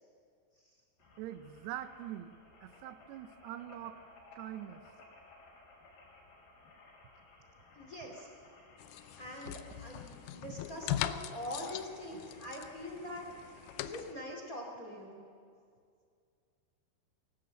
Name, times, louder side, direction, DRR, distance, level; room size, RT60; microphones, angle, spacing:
sound 1, 1.0-14.3, left 3 dB, 65° left, 5.6 m, -59 dB
voice 1, 1.2-2.3 2.6-4.0 4.3-4.8, right 12 dB, 80° right, 10 dB, 2.8 m, -43 dB
voice 2, 7.7-8.3 9.2-10.0 10.3-15.2, left 1 dB, 25° left, 1 dB, 2.3 m, -43 dB
sound 2, 8.8-14.1, left 13 dB, 85° left, 1.9 m, -41 dB
24.0 x 18.0 x 7.8 m, 2.3 s
omnidirectional pair, 4.8 m